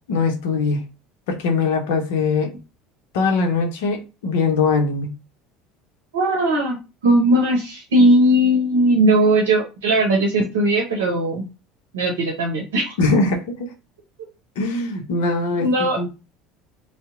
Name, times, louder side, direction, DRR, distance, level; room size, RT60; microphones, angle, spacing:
voice 1, 0.1-0.8 1.3-2.5 3.1-5.1 13.0-13.7 14.6-16.1, left 4 dB, 70° left, 4 dB, 0.8 m, -21 dB
voice 2, 6.1-6.8 7.0-11.5 11.9-12.9 15.6-16.0, right 1 dB, 80° right, 0 dB, 0.7 m, -18 dB
2.7 x 2.1 x 3.6 m, 0.29 s
hypercardioid pair, 70°, 0 cm